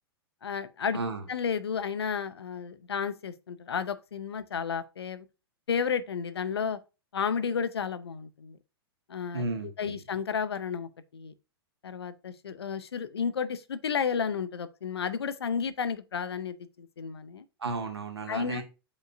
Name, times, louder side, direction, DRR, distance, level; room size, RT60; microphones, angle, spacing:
voice 1, 0.4-1.0 1.3-5.3 5.7-6.8 7.1-8.6 9.1-9.4 9.8-11.3 11.8-17.5 18.3-18.6, left 6 dB, 75° left, 0.7 m, -32 dB
voice 2, 0.9-1.2 9.3-10.0 17.6-18.6, right 3 dB, 85° right, 1.7 m, -33 dB
7.4 x 5.3 x 2.6 m
figure-of-eight pair, 105°, 13 cm